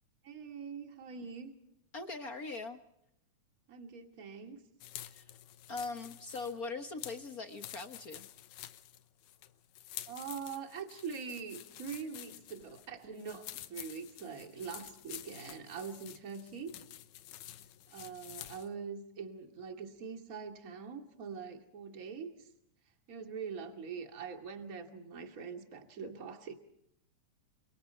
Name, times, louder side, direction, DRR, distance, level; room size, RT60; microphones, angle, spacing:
voice 1, 0.2-1.5 3.7-4.6 10.1-16.8 17.9-22.5 23.1-26.5, right 6 dB, 30° right, 5 dB, 2.6 m, -43 dB
voice 2, 1.9-2.8 5.1-5.3 5.7-8.3, left 3 dB, 50° left, 7 dB, 1.1 m, -41 dB
sound 1, 4.8-18.7, left 13 dB, 80° left, 2.4 m, -49 dB
29.5 x 26.5 x 4.5 m, 0.77 s
omnidirectional pair, 3.4 m